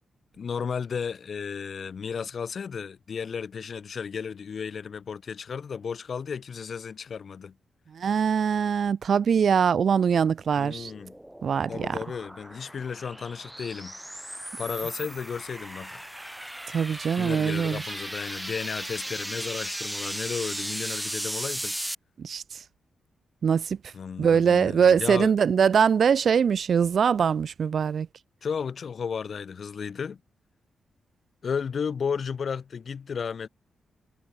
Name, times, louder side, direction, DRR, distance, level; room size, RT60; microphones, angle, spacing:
voice 1, 0.3-7.5 10.5-11.1 11.7-14.0 14.6-16.0 17.2-21.8 23.9-25.3 28.4-30.2 31.4-33.5, left 6 dB, 60° left, 3.4 m, -33 dB
voice 2, 7.9-10.9 11.4-12.0 16.7-17.8 22.2-22.4 23.4-23.8 24.2-28.1, right 7 dB, 65° right, 0.3 m, -22 dB
sound 1, 10.5-22.0, right 1 dB, 5° right, 1.0 m, -36 dB
cardioid pair, 70°, 0 cm